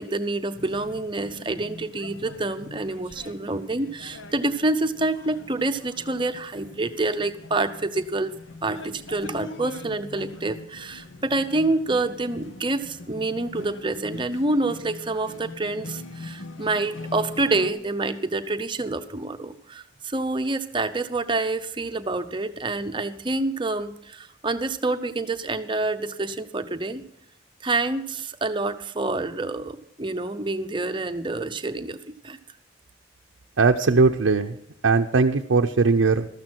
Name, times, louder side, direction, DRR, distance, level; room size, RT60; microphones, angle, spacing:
voice 1, 0.0-27.0 27.6-32.4, right 2 dB, 25° right, 9 dB, 0.7 m, -27 dB
sound 1, 0.5-17.7, left 2 dB, 85° left, 1.1 m, -42 dB
voice 2, 33.6-34.6 34.8-36.3, right 4 dB, 80° right, 4 dB, 0.6 m, -19 dB
14.0 x 13.5 x 4.4 m, 0.76 s
head